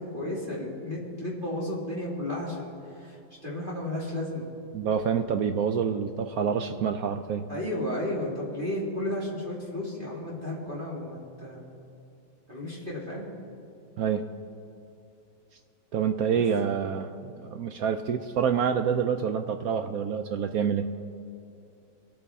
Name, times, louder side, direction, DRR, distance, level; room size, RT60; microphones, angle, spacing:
voice 1, 0.1-2.7 3.0-4.4 7.5-11.6 12.5-13.3 16.3-16.4, left 1 dB, 30° right, -5 dB, 2.3 m, -33 dB
voice 2, 4.7-7.5 14.0-14.2 15.9-17.1 17.4-20.9, right 7 dB, 70° right, 7 dB, 0.9 m, -27 dB
22.5 x 8.7 x 3.6 m, 2.6 s
omnidirectional pair, 1.9 m